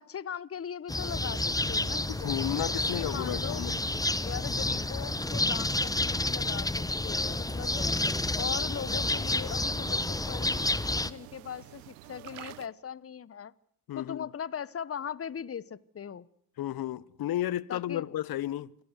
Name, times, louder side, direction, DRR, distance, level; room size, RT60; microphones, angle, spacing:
voice 1, 0.0-2.3 2.9-3.9 4.2-7.9 8.4-13.5 13.9-16.3 17.7-18.2, left 8 dB, 30° left, 1.1 m, -39 dB
sound 1, 0.9-11.1, left 2 dB, 10° left, 1.1 m, -30 dB
sound 2, 1.0-12.7, right 17 dB, 85° right, 1.1 m, -50 dB
voice 2, 2.1-3.8 7.8-7.9 13.9-14.3 16.6-18.7, left 13 dB, 55° left, 1.1 m, -33 dB
27.5 x 18.0 x 8.2 m
hypercardioid pair, 55°, 43 cm